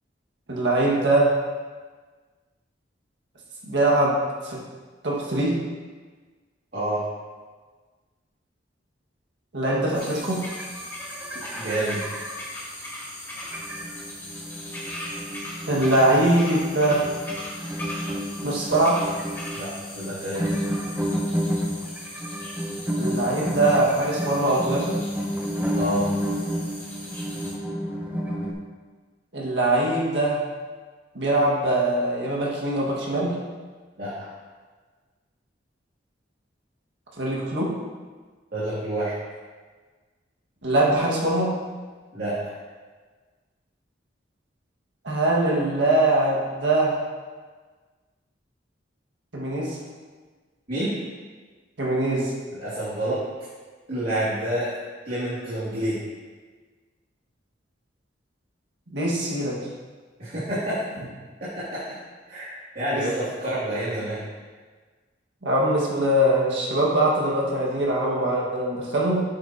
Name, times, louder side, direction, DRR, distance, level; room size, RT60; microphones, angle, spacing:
voice 1, 0.5-1.4 3.6-4.2 4.4-4.6 5.0-5.6 9.5-10.4 15.7-17.1 18.4-19.0 23.0-25.0 29.3-30.4 31.1-33.3 37.2-37.7 40.6-41.5 45.0-47.1 49.3-49.8 51.8-52.3 58.9-59.6 62.9-63.0 65.4-69.2, right 1 dB, 75° right, -3 dB, 1.8 m, -22 dB
sound 1, 9.7-9.8 10.2-10.3 10.5-12.4 13.4-28.5, equal, 10° right, 0.7 m, -31 dB
sound 2, 9.9-27.5, left 1 dB, 10° left, 2.2 m, -39 dB
voice 2, 11.5-12.1 19.5-20.4 25.7-26.1 34.0-34.3 38.5-39.1 42.1-42.4 50.7-50.9 52.6-53.2 53.9-54.7 55.0-56.0 60.2-60.8 61.4-61.8 62.3-64.2, right 1 dB, 50° right, -13 dB, 2.6 m, -28 dB
8.5 x 8.2 x 2.9 m, 1.4 s
head